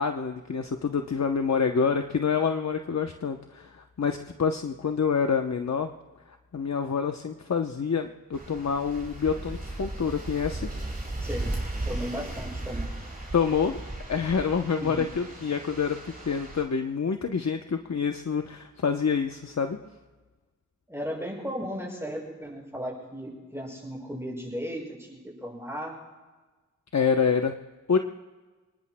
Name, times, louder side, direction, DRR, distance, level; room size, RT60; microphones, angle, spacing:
voice 1, 0.0-5.9 6.5-10.7 13.3-13.8 14.1-19.8 26.9-27.6 27.9-28.0, left 6 dB, 60° left, 5 dB, 0.8 m, -27 dB
sound 1, 8.3-16.6, right 2 dB, 30° right, 4.4 m, -36 dB
voice 2, 11.2-11.5 11.8-12.9 14.8-15.0 20.9-26.0, equal, 10° right, -2 dB, 6.2 m, -35 dB
29.0 x 19.5 x 2.2 m, 1.3 s
wide cardioid pair, 95°, 31 cm